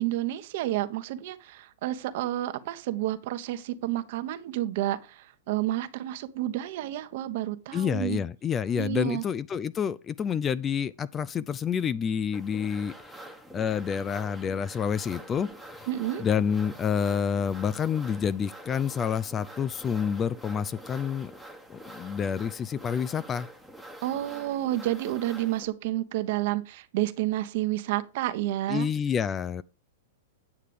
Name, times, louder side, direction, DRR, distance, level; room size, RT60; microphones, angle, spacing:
voice 1, 0.0-8.2 8.8-9.2 15.9-16.2 24.0-28.9, right 14 dB, 55° right, 1.0 m, -30 dB
voice 2, 7.7-13.2 13.5-15.9 16.2-21.3 21.7-23.5 28.7-29.6, left 7 dB, 20° left, 0.4 m, -28 dB
sound 1, 12.3-25.7, right 1 dB, 5° left, 1.2 m, -46 dB
9.5 x 6.6 x 5.1 m
hypercardioid pair, 140°, 0 cm